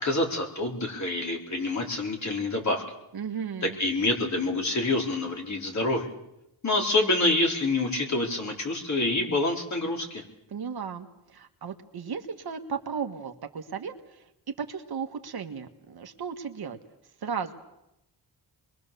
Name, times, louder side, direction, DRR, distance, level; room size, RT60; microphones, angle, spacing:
voice 1, 0.0-2.8 3.6-6.1 6.6-10.2, left 2 dB, 40° left, 1 dB, 4.2 m, -27 dB
voice 2, 3.1-3.8 10.5-16.8 17.2-17.5, right 6 dB, 60° right, 6 dB, 1.7 m, -35 dB
27.5 x 22.0 x 6.9 m, 0.88 s
wide cardioid pair, 125°, 43 cm